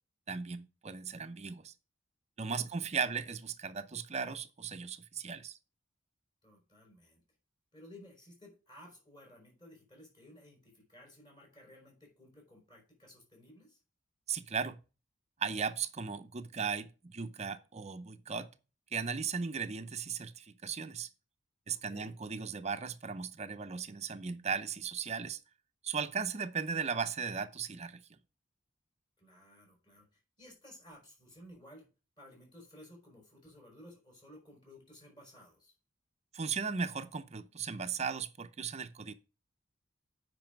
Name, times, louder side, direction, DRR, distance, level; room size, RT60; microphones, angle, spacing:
voice 1, 0.3-1.7 2.4-5.6 14.3-14.8 15.4-18.5 18.9-21.1 21.7-25.4 25.8-28.0 36.3-39.1, right 5 dB, 35° right, 0.6 m, -37 dB
voice 2, 2.5-3.2 6.4-7.2 7.7-13.8 21.7-22.2 29.2-31.9 32.2-35.7, left 1 dB, 25° left, 5.3 m, -56 dB
9.1 x 5.3 x 5.2 m
head